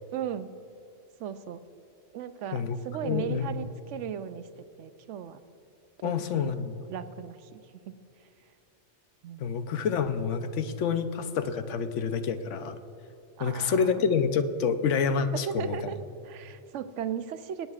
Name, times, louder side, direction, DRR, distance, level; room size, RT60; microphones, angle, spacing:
voice 1, 0.1-0.5 1.2-1.6 2.1-5.4 6.0-6.6 6.9-7.6 7.9-8.0 8.2-8.3 9.2-9.5 13.4-14.0 15.3-16.0 16.2-17.7, right 9 dB, 80° right, 11 dB, 0.9 m, -37 dB
voice 2, 3.0-3.6 6.0-6.8 9.4-12.8 13.4-15.9, left 6 dB, 80° left, 10 dB, 1.0 m, -28 dB
22.5 x 9.2 x 2.4 m, 2.8 s
omnidirectional pair, 1.3 m